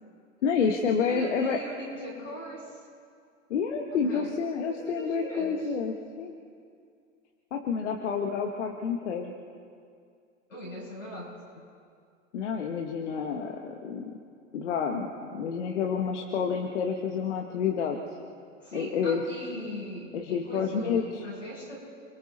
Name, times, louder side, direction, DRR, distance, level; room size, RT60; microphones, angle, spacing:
voice 1, 0.4-1.6 3.5-6.3 7.5-9.3 12.3-14.2 14.5-18.0 18.7-19.2 20.1-21.2, left 6 dB, 65° left, 2 dB, 1.7 m, -29 dB
voice 2, 1.1-2.8 4.1-4.4 4.6-5.7 10.5-11.4 18.6-21.8, equal, 90° left, -4 dB, 7.3 m, -40 dB
29.5 x 21.5 x 4.3 m, 2.3 s
figure-of-eight pair, 80°, 37 cm